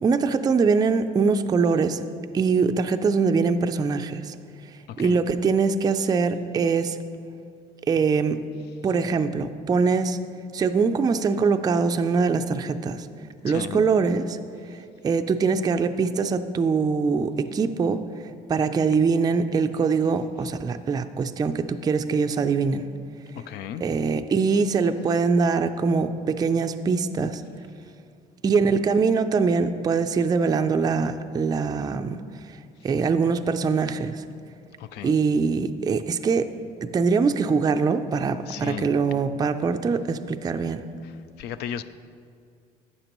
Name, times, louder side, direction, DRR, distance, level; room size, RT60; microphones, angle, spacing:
voice 1, 0.0-2.0 2.3-4.4 5.0-7.0 7.9-8.4 8.8-10.2 10.5-13.1 13.4-14.4 15.0-18.0 18.5-22.9 23.8-27.4 28.4-32.2 32.8-34.2 35.0-36.5 36.8-40.8, right 5 dB, 25° right, 8 dB, 0.4 m, -23 dB
voice 2, 4.9-5.2 13.5-13.8 23.4-23.8 34.8-35.1 38.5-38.9 41.0-41.1 41.4-41.8, left 10 dB, 75° left, 13 dB, 0.4 m, -35 dB
12.0 x 8.4 x 3.0 m, 2.3 s
cardioid pair, 110°, 17 cm